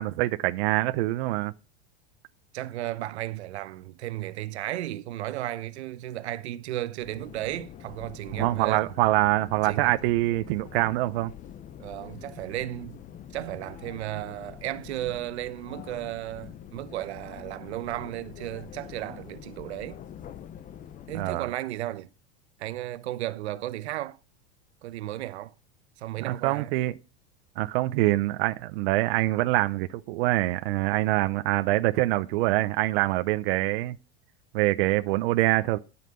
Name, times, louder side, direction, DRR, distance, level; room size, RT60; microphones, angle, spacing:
voice 1, 0.0-1.5 8.3-11.3 21.1-21.5 26.3-26.9 27.6-34.0 34.5-35.8, right 18 dB, 65° right, 0.8 m, -25 dB
voice 2, 2.5-8.9 9.6-10.0 11.8-13.0 13.3-20.0 21.1-22.1 22.6-24.2 24.8-25.5 26.0-26.7, right 14 dB, 85° right, 1.0 m, -34 dB
sound 1, 7.0-21.4, left 9 dB, 25° left, 0.7 m, -45 dB
12.5 x 5.8 x 5.6 m
supercardioid pair, 135°, 32 cm